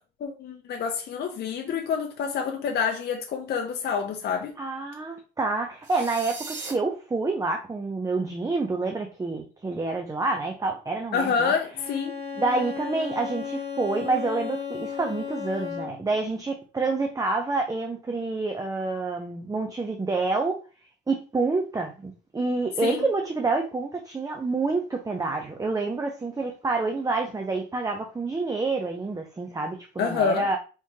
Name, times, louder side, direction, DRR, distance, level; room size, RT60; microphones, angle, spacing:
voice 1, 0.2-4.5 11.1-12.1 22.8-23.0 30.0-30.5, left 6 dB, 55° left, 0.5 m, -27 dB
voice 2, 4.6-11.5 12.4-20.6 21.1-30.6, right 3 dB, 15° right, 0.5 m, -28 dB
sound 1, 5.8-6.7, right 4 dB, 65° right, 1.1 m, -37 dB
Bowed string instrument, 11.7-16.2, left 7 dB, 30° left, 0.8 m, -34 dB
3.6 x 2.8 x 2.7 m
cardioid pair, 90°, 20 cm